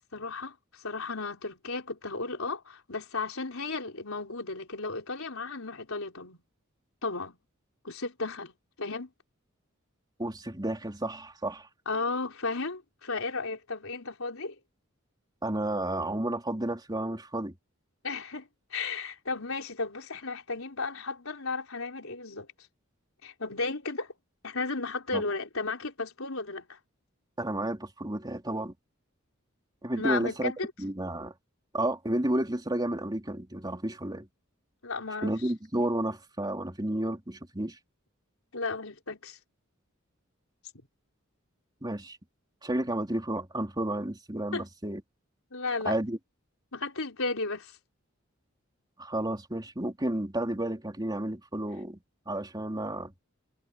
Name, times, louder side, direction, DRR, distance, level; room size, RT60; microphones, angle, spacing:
voice 1, 0.1-6.4 7.0-7.4 7.8-9.1 11.9-14.6 18.0-22.5 23.2-24.1 24.4-26.8 30.0-30.7 34.8-35.3 38.5-39.4 44.5-44.6 45.5-45.9 46.7-47.8, left 3 dB, 80° left, 4.2 m, -34 dB
voice 2, 10.2-11.7 15.4-17.5 25.1-25.2 27.4-28.7 29.8-30.5 30.8-31.3 31.7-34.3 35.2-37.8 41.8-42.2 42.6-45.0 45.8-46.2 49.0-52.0 52.3-53.1, right 1 dB, 20° right, 3.3 m, -31 dB
head